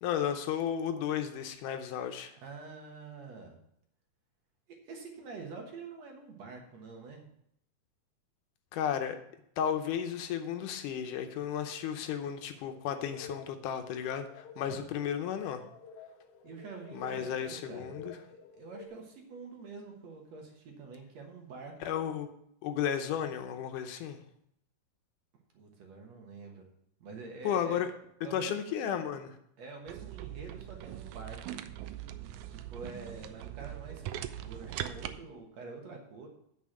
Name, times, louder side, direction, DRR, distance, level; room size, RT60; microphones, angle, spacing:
voice 1, 0.0-2.3 8.7-9.2 9.6-15.6 16.9-18.2 21.8-22.3 22.6-24.2 27.4-27.9 28.3-29.3, left 9 dB, 80° left, 7 dB, 2.2 m, -33 dB
voice 2, 2.4-3.6 4.8-7.2 14.6-14.8 16.4-21.7 25.5-26.7 27.0-27.8 28.2-28.7 29.6-31.4 32.5-36.3, right 4 dB, 60° right, 2 dB, 2.3 m, -46 dB
sound 1, 12.5-18.9, left 5 dB, 60° left, 1.8 m, -51 dB
sound 2, 29.9-35.2, right 12 dB, 80° right, 1.7 m, -41 dB
9.4 x 6.1 x 6.3 m, 0.73 s
omnidirectional pair, 3.8 m